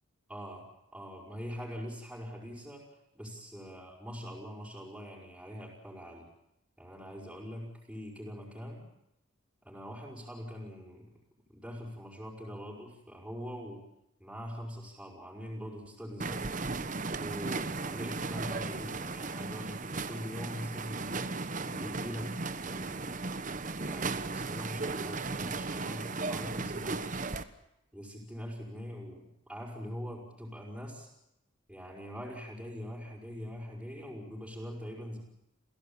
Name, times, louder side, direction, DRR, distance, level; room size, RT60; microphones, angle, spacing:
voice 1, 0.3-0.7 0.9-6.3 6.8-8.9 9.6-11.1 11.5-13.8 14.2-16.5 17.2-21.1 21.6-23.3 23.7-27.1 27.9-31.1 31.7-35.2, equal, 5° right, -4 dB, 5.5 m, -43 dB
sound 1, 16.2-27.4, right 3 dB, 40° right, 1.1 m, -36 dB
28.5 x 16.5 x 8.9 m, 0.84 s
head